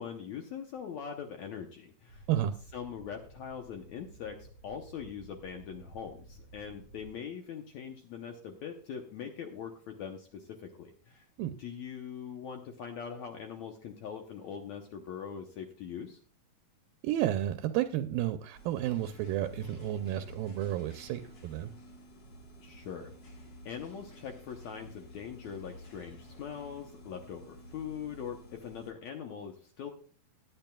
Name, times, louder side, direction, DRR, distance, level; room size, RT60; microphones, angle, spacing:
voice 1, 0.0-2.2 2.7-11.3 11.6-16.2 22.6-23.1 23.6-29.9, left 7 dB, 75° left, 4 dB, 1.7 m, -42 dB
sound 1, 2.1-7.1, right 2 dB, 25° left, 1.9 m, -54 dB
voice 2, 17.0-21.7, right 12 dB, 80° right, 8 dB, 2.3 m, -31 dB
sound 2, 18.5-28.9, equal, 50° left, 1.3 m, -51 dB
18.0 x 10.5 x 2.3 m, 0.43 s
omnidirectional pair, 4.3 m